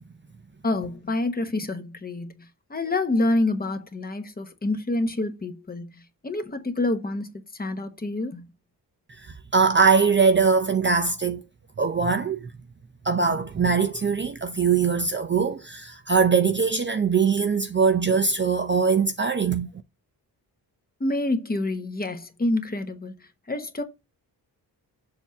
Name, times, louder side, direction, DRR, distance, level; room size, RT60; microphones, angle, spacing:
voice 1, 0.6-8.4 21.0-23.1 23.5-23.8, left 2 dB, 20° left, 1.1 m, -27 dB
voice 2, 9.5-11.4 11.8-12.5 13.0-19.7, right 5 dB, 30° right, 0.6 m, -21 dB
7.1 x 2.8 x 5.7 m
wide cardioid pair, 150°, 40 cm